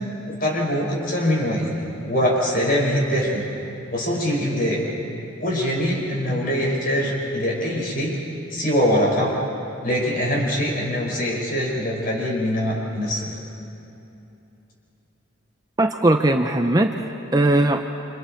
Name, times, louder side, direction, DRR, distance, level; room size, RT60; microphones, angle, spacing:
voice 1, 0.4-1.7 2.0-3.5 3.9-4.8 5.4-8.2 8.5-9.3 9.8-13.3, equal, 45° left, -2 dB, 5.6 m, -23 dB
voice 2, 15.8-17.8, right 1 dB, 20° right, 5 dB, 0.7 m, -19 dB
29.0 x 26.5 x 4.5 m, 2.8 s
head